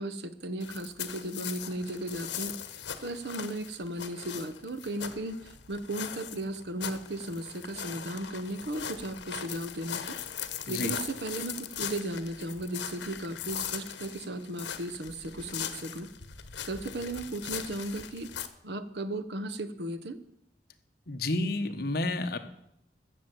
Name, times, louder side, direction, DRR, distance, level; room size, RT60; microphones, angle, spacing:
voice 1, 0.0-2.6 3.0-10.2 10.7-16.1 16.6-18.3 18.6-20.2, right 1 dB, 65° right, 12 dB, 0.9 m, -36 dB
sound 1, 0.6-18.5, left 9 dB, 85° left, 1.1 m, -40 dB
voice 2, 21.1-22.4, left 2 dB, 55° left, 7 dB, 1.1 m, -30 dB
14.5 x 7.1 x 7.8 m, 0.77 s
head